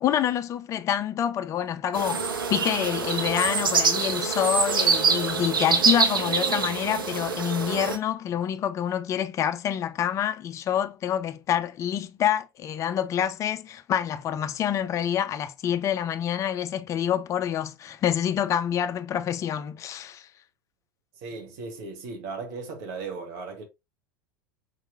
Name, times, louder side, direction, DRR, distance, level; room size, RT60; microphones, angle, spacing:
voice 1, 0.0-20.3, left 10 dB, 25° left, 0.4 m, -27 dB
sound 1, 1.9-8.0, right 5 dB, 75° right, 0.6 m, -25 dB
voice 2, 21.2-23.6, right 4 dB, 50° right, 1.2 m, -36 dB
4.5 x 2.9 x 2.5 m
figure-of-eight pair, 80°, 12 cm